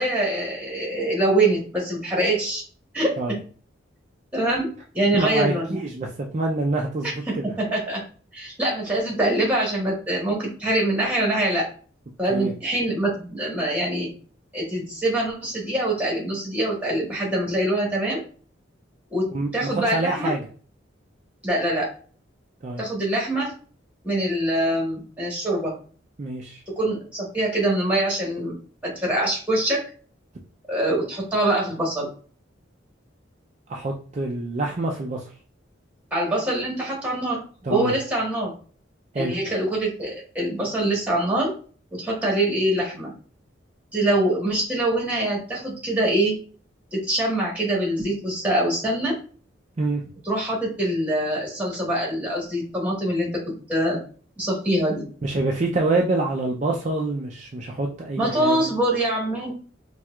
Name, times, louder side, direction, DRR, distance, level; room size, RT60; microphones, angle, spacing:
voice 1, 0.0-2.6 2.9-3.4 4.3-4.7 4.9-5.8 7.0-8.0 8.3-11.7 12.2-14.1 14.5-18.2 19.1-19.3 19.5-20.3 21.4-21.9 22.8-23.5 24.0-25.7 26.8-28.5 28.8-29.9 30.7-32.1 36.1-37.4 37.7-38.5 39.1-41.5 41.9-43.1 43.9-46.4 46.9-49.1 50.2-54.0 54.4-55.1 58.2-59.5, right 1 dB, 10° right, -3 dB, 1.4 m, -24 dB
voice 2, 5.2-7.4 12.3-12.5 19.3-20.4 22.6-22.8 26.2-26.6 33.7-35.3 37.6-37.9 39.1-39.3 49.8-50.0 55.2-58.7, right 2 dB, 35° right, -1 dB, 0.4 m, -26 dB
4.4 x 2.3 x 2.3 m, 0.41 s
head